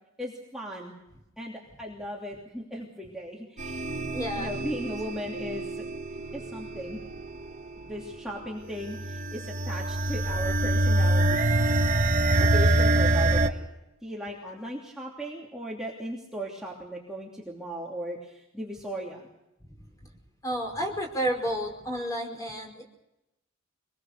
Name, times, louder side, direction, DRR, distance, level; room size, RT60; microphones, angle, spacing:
voice 1, 0.2-1.0 1.4-3.9 4.4-5.8 6.3-7.0 7.8-11.5 12.4-13.6 14.0-19.3, equal, 5° right, -4 dB, 3.0 m, -37 dB
sound 1, 3.6-13.5, right 2 dB, 35° right, 1.4 m, -26 dB
voice 2, 4.1-4.6 20.4-22.8, equal, 15° left, 1 dB, 5.2 m, -31 dB
25.0 x 21.0 x 6.8 m, 0.90 s
head